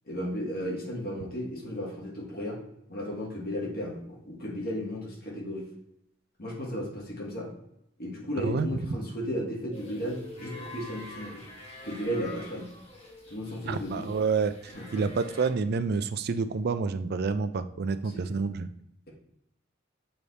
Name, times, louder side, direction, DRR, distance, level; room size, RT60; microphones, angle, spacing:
voice 1, 0.0-2.6 2.9-5.7 6.4-7.5 8.0-11.4 11.8-12.7 13.3-14.1 14.7-15.0 18.1-18.3, equal, 55° left, -1 dB, 1.6 m, -34 dB
sound 1, 9.7-15.5, left 2 dB, 30° left, 1.5 m, -46 dB
voice 2, 13.6-18.7, right 4 dB, 55° right, 12 dB, 0.4 m, -29 dB
7.0 x 3.3 x 4.0 m, 0.76 s
head